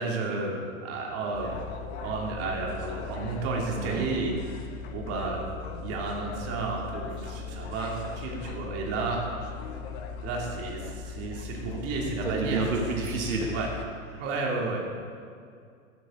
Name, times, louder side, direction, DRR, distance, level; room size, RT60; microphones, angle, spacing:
voice 1, 0.0-1.6 2.0-4.3 4.9-5.4 5.8-9.3 10.2-13.1 13.5-13.7 14.2-14.8, right 3 dB, 35° right, -1 dB, 2.8 m, -32 dB
sound 1, 1.3-13.9, left 5 dB, 50° left, 1.3 m, -39 dB
voice 2, 3.8-4.1 12.2-13.6 14.1-14.2, right 3 dB, 80° right, -1 dB, 2.3 m, -29 dB
15.0 x 12.0 x 3.8 m, 2.3 s
hypercardioid pair, 115°, 42 cm